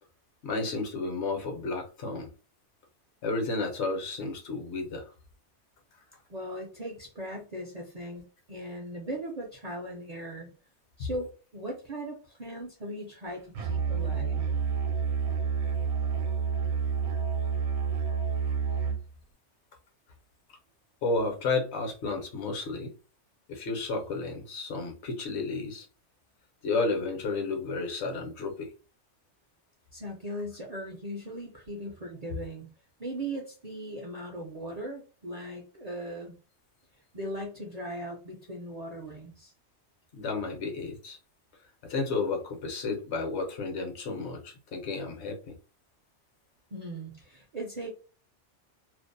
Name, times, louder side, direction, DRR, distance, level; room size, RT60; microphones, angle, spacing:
voice 1, 0.4-2.3 3.2-5.1 11.0-11.1 21.0-22.9 23.5-25.9 26.6-28.7 40.1-41.2 41.8-45.5, left 3 dB, 65° left, 0.9 m, -32 dB
voice 2, 6.3-8.2 8.5-10.5 11.0-14.4 29.9-32.7 33.0-36.3 37.1-39.5 46.7-47.9, right 1 dB, 50° right, 0.5 m, -38 dB
Musical instrument, 13.5-19.0, right 6 dB, 75° right, 1.0 m, -29 dB
2.5 x 2.0 x 2.5 m
omnidirectional pair, 1.2 m